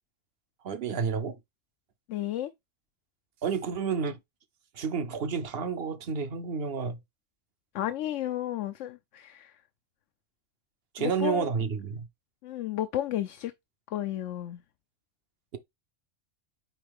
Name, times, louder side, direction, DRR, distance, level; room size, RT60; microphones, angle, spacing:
voice 1, 0.6-1.4 3.4-4.2 4.7-7.0 10.9-12.1, right 6 dB, 60° right, 1.0 m, -30 dB
voice 2, 2.1-2.5 7.7-9.5 11.0-11.5 12.4-13.5 13.9-14.6, left 12 dB, 85° left, 0.9 m, -32 dB
8.7 x 3.3 x 3.5 m
omnidirectional pair, 1.2 m